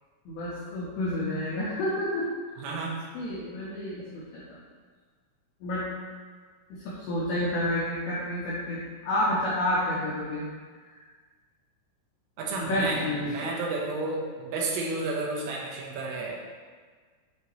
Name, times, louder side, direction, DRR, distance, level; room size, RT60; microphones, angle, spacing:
voice 1, 0.3-2.3 3.1-4.6 5.6-5.9 6.7-10.4 10.8-11.0 12.6-13.3, left 1 dB, 80° left, -8 dB, 2.3 m, -30 dB
voice 2, 2.6-3.0 12.4-16.6, right 3 dB, 85° right, -3 dB, 3.5 m, -32 dB
8.1 x 2.8 x 4.6 m, 1.5 s
omnidirectional pair, 5.9 m